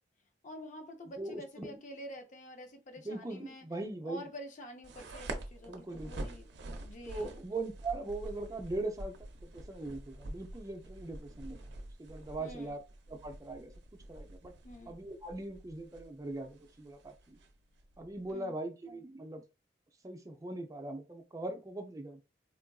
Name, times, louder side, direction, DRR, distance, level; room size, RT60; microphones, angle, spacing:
voice 1, 0.4-3.7 4.0-7.4 12.4-12.8 14.6-14.9 18.3-18.6, equal, 45° left, 0.6 m, -48 dB
voice 2, 1.2-1.8 3.0-4.3 5.7-6.3 7.1-11.6 12.0-12.8 13.1-13.7 14.1-14.5 14.9-17.4 18.0-19.4 20.0-22.2, right 2 dB, 20° right, 0.5 m, -40 dB
sound 1, 4.8-18.3, right 2 dB, 80° right, 0.6 m, -47 dB
3.6 x 2.4 x 2.3 m
head